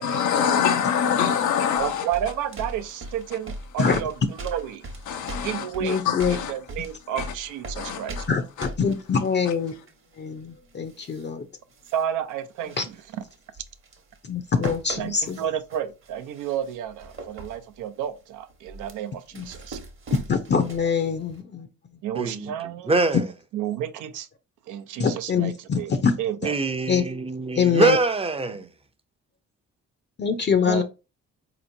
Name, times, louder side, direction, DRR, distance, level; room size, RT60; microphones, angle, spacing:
voice 1, 0.0-2.1 3.8-4.0 5.1-6.5 7.2-7.3 7.7-8.3 8.6-8.7 9.5-9.6, left 8 dB, 80° left, 0.6 m, -25 dB
sound 1, 1.8-11.3 11.7-12.0 12.3-14.2 14.5-21.1 21.3-21.4, right 2 dB, 40° right, 1.0 m, -40 dB
voice 2, 1.8-4.9 5.3-6.0 6.5-8.2 11.9-12.8 15.0-19.8 22.0-22.9 23.5-24.3 24.7-25.9 26.2-26.5 30.6-30.8, right 10 dB, 85° right, 0.6 m, -31 dB
voice 3, 5.8-6.4 8.3-9.7 10.2-11.5 12.8-12.9 14.2-15.4 19.3-19.4 20.3-21.7 25.0-26.1 26.9-27.0 27.6-28.0 30.2-30.8, left 6 dB, 35° left, 0.5 m, -24 dB
voice 4, 22.1-23.3 26.4-28.7, right 2 dB, 20° right, 0.6 m, -24 dB
4.2 x 2.9 x 2.6 m
cardioid pair, 90°, 30 cm